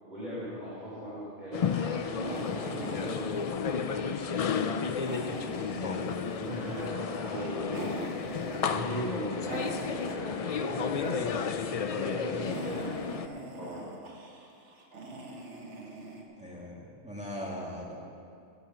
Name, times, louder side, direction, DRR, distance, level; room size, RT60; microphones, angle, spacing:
voice 1, 0.0-3.4 3.7-4.6 6.4-8.0 8.6-9.6 9.9-13.2 13.6-13.8, equal, 40° right, -9 dB, 3.4 m, -38 dB
sound 1, 1.5-13.3, left 6 dB, 65° left, 0.3 m, -33 dB
sound 2, 1.5-10.6 10.9-11.8 12.0-16.2, right 2 dB, 80° right, 1.6 m, -42 dB
voice 2, 5.7-6.2 16.4-18.0, equal, 5° right, -4 dB, 2.3 m, -40 dB
15.5 x 7.8 x 5.6 m, 2.5 s
omnidirectional pair, 1.2 m